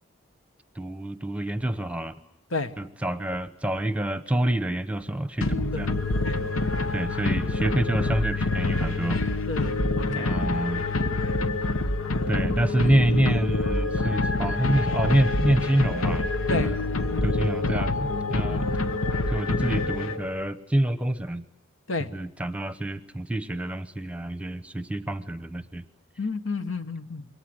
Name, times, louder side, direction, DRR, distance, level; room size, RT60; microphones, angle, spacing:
voice 1, 0.8-2.1 2.8-6.0 6.9-9.2 10.1-10.9 12.3-16.8 17.2-18.8 19.3-21.5 22.1-25.8, right 1 dB, 5° right, 12 dB, 0.9 m, -27 dB
sound 1, 5.4-20.5, left 2 dB, 90° left, 1.4 m, -26 dB
voice 2, 9.5-10.4 16.5-16.7 17.1-17.2 18.5-18.6 21.9-22.1 26.2-27.2, left 3 dB, 70° left, 10 dB, 1.5 m, -31 dB
27.5 x 23.5 x 8.0 m, 0.80 s
head